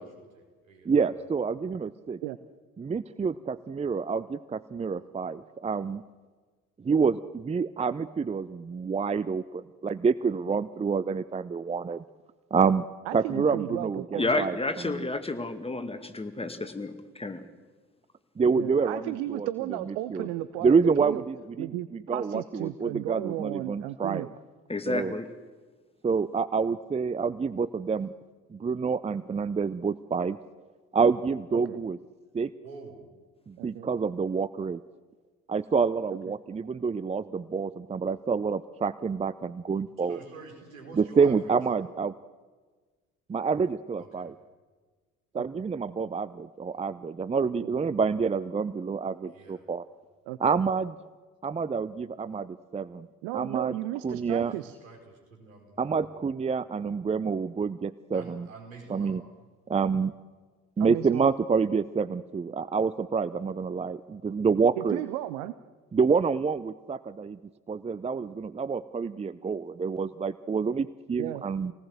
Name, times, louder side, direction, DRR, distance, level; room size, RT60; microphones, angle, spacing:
voice 1, 0.0-1.1 32.6-33.0 40.0-41.5 44.0-44.3 46.7-46.8 49.3-49.6 54.3-56.1 58.1-59.2, right 4 dB, 80° right, 2 dB, 4.9 m, -48 dB
voice 2, 0.8-2.2 2.8-6.0 6.8-12.0 12.5-12.8 13.1-14.6 14.8-15.0 18.4-19.5 19.9-20.3 20.6-24.3 24.9-25.1 26.0-28.1 28.5-30.4 30.9-32.0 32.3-32.5 33.5-34.8 35.5-40.2 40.9-42.1 43.3-44.3 45.3-49.8 50.4-51.0 51.4-53.1 53.3-53.8 54.0-54.5 55.8-58.5 58.9-59.2 59.7-60.1 60.8-65.0 65.9-67.4 67.7-71.7, right 5 dB, 15° right, 16 dB, 0.7 m, -27 dB
voice 3, 13.1-14.3 18.5-21.2 21.6-24.3 31.7-31.8 33.6-33.9 41.2-41.4 45.3-45.4 47.6-47.7 50.3-50.4 53.2-54.7 60.8-61.3 64.8-65.5 71.2-71.4, right 15 dB, 60° right, 14 dB, 1.0 m, -34 dB
voice 4, 14.2-17.4 24.7-25.3, left 2 dB, 15° left, 8 dB, 2.2 m, -31 dB
27.5 x 19.0 x 7.8 m, 1.4 s
figure-of-eight pair, 55°, 39 cm